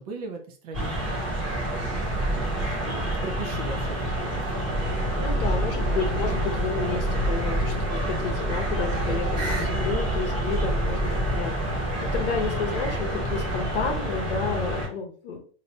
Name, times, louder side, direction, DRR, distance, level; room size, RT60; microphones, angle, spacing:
voice 1, 0.0-3.9 4.2-4.4 9.1-9.5, right 3 dB, 35° right, 2 dB, 0.7 m, -39 dB
sound 1, 0.7-14.9, right 1 dB, 15° right, 1.2 m, -27 dB
voice 2, 5.2-9.3 9.6-15.4, left 5 dB, 50° left, 3 dB, 0.9 m, -31 dB
3.2 x 2.8 x 2.7 m, 0.41 s
hypercardioid pair, 165°, 34 cm